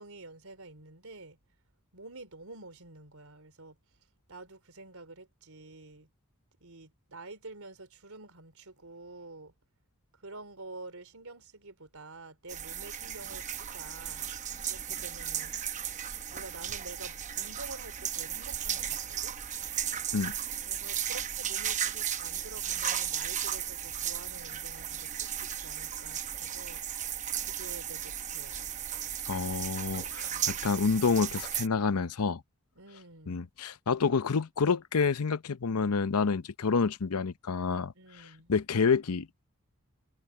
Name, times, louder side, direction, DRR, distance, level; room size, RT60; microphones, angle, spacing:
voice 1, 0.0-1.4 1.9-3.8 4.3-6.1 6.6-9.5 10.2-14.3 14.7-15.5 16.3-19.4 20.7-26.8 27.4-28.7 30.2-30.5 32.8-33.5 37.9-38.5, right 2 dB, 75° right, 3.8 m, -48 dB
sound 1, 12.5-31.7, right 9 dB, 35° right, 0.9 m, -35 dB
voice 2, 29.3-32.4 33.3-37.9 38.5-39.3, left 5 dB, 85° left, 0.7 m, -28 dB
head